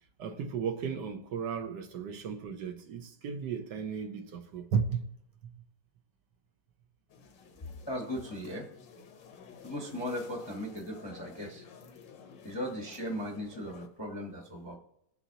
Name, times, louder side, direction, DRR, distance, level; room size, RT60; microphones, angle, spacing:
voice 1, 0.2-5.0, right 6 dB, 70° right, 1.4 m, -34 dB
sound 1, 7.1-13.9, left 6 dB, 80° left, 1.6 m, -52 dB
voice 2, 7.9-8.7 9.6-11.6 12.4-14.8, equal, 20° left, 0.7 m, -37 dB
18.5 x 7.0 x 2.8 m
omnidirectional pair, 2.0 m